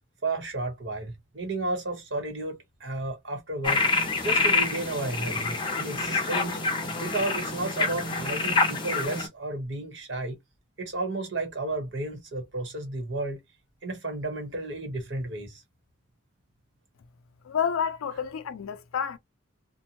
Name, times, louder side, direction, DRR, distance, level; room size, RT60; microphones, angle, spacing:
voice 1, 0.2-6.6 7.0-10.4 10.8-13.4 13.8-15.6, right 2 dB, 60° right, 1.0 m, -33 dB
sound 1, 3.6-9.3, left 3 dB, 25° left, 0.6 m, -27 dB
voice 2, 17.4-19.2, left 7 dB, 85° left, 0.4 m, -29 dB
2.6 x 2.1 x 2.8 m
head